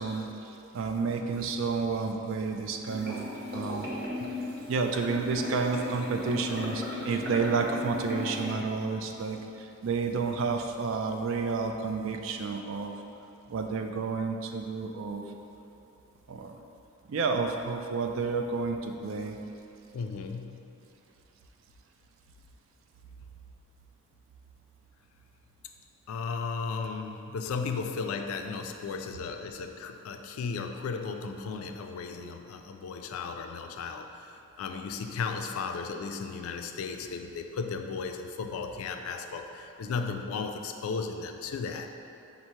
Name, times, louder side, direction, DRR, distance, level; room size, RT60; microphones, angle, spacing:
voice 1, 0.0-3.2 3.5-3.9 4.7-12.9 13.5-15.2 16.3-16.6 17.1-19.4, right 4 dB, 70° right, 4 dB, 0.3 m, -30 dB
sound 1, 2.9-8.6, left 1 dB, 50° right, 0.7 m, -36 dB
voice 2, 19.9-20.7 26.1-41.9, left 5 dB, 90° left, 5 dB, 0.3 m, -35 dB
5.3 x 2.0 x 4.5 m, 2.8 s
head